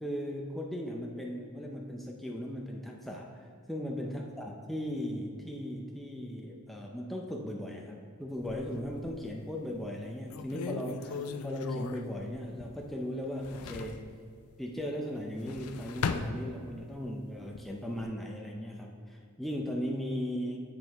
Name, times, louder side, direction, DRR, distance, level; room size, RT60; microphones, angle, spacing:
voice 1, 0.0-14.1 14.6-20.6, equal, ahead, -1 dB, 0.5 m, -37 dB
sound 1, 8.4-9.3 9.8-9.9 10.3-13.0 13.2-14.1 15.2-17.0 17.4-18.0, left 5 dB, 85° left, 0.4 m, -38 dB
7.6 x 7.6 x 3.4 m, 2.2 s
head